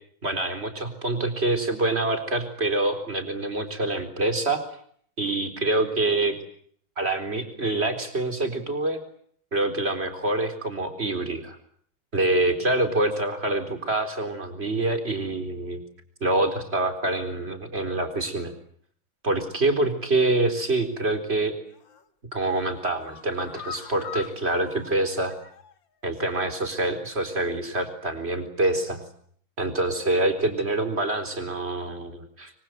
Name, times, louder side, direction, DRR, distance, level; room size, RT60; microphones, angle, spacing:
voice 1, 0.2-4.6 5.2-6.4 7.0-9.0 9.5-11.6 12.1-15.8 16.2-18.5 19.2-21.6 22.3-25.3 26.0-29.0 29.6-32.5, right 2 dB, 30° right, 7 dB, 4.3 m, -26 dB
sound 1, 21.7-22.1 22.5-25.9 26.2-26.3 26.6-26.7, left 7 dB, 75° left, 2.5 m, -42 dB
25.0 x 25.0 x 9.1 m, 0.63 s
omnidirectional pair, 2.1 m